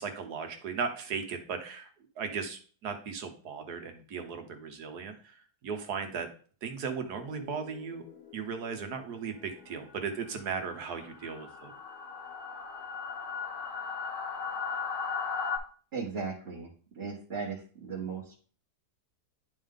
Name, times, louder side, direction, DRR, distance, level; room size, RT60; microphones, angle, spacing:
voice 1, 0.0-1.9 2.2-6.3 6.6-8.0 8.3-11.7, right 5 dB, 80° right, 6 dB, 1.6 m, -37 dB
sound 1, 7.2-15.6, left 5 dB, 75° left, 1.9 m, -39 dB
voice 2, 15.9-18.3, right 5 dB, 40° right, -4 dB, 1.5 m, -37 dB
10.5 x 3.6 x 3.7 m, 0.40 s
omnidirectional pair, 1.7 m